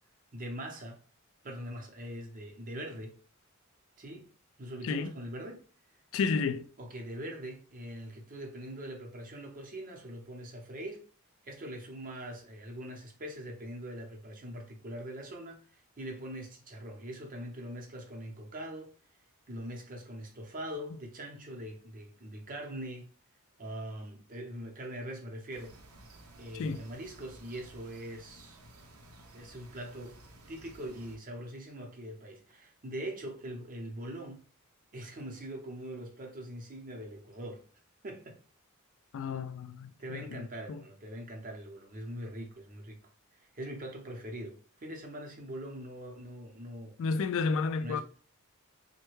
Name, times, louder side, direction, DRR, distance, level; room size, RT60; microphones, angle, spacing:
voice 1, 0.3-1.0 1.4-3.2 4.0-4.3 4.6-5.6 6.8-11.1 11.4-18.9 19.5-23.1 23.6-25.8 26.4-28.6 29.3-30.2 30.5-34.4 34.9-37.6 38.0-38.4 40.0-43.0 43.4-47.0 47.8-48.0, right 1 dB, 40° right, 0.7 m, -42 dB
voice 2, 6.1-6.6 26.5-26.8 39.1-40.8 47.0-48.0, left 4 dB, 65° left, 0.3 m, -32 dB
sound 1, 25.5-31.2, right 1 dB, 80° right, 0.6 m, -54 dB
3.2 x 2.2 x 3.1 m
head